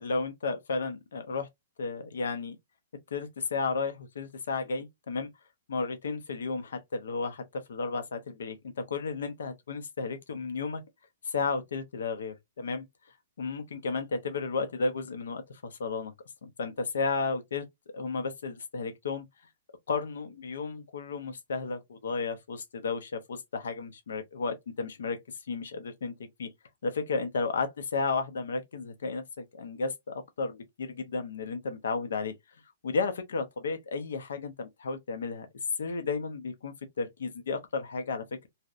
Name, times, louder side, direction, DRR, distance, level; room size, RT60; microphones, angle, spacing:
voice 1, 0.0-1.5 1.8-2.6 3.1-5.3 5.7-7.4 7.7-8.6 8.9-10.8 11.2-12.9 13.4-16.1 16.4-17.7 17.9-19.2 19.9-25.2 25.5-26.1 26.4-26.5 26.8-32.3 32.8-35.5 35.8-38.5, left 4 dB, 85° left, 0.5 m, -33 dB
2.7 x 2.0 x 2.3 m
hypercardioid pair, 175°, 0 cm